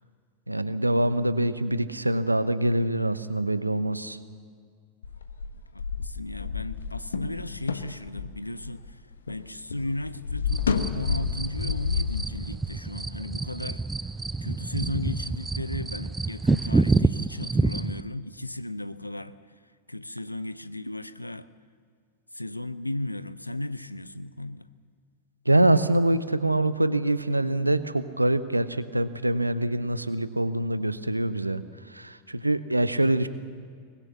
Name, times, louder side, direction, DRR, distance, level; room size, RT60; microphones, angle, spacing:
voice 1, 0.5-4.2 25.5-31.6 31.9-33.3, right 1 dB, 85° right, 14 dB, 0.9 m, -24 dB
sound 1, 5.0-9.4 9.7-12.2, left 5 dB, 70° left, 1.2 m, -30 dB
voice 2, 5.7-9.0 9.3-13.8 14.4-19.4 19.9-21.5 22.3-24.7, left 1 dB, 85° left, 16 dB, 0.6 m, -35 dB
sound 2, 10.5-18.0, right 3 dB, 10° right, 0.5 m, -28 dB
23.5 x 20.0 x 7.0 m, 2.1 s
figure-of-eight pair, 90°, 0 cm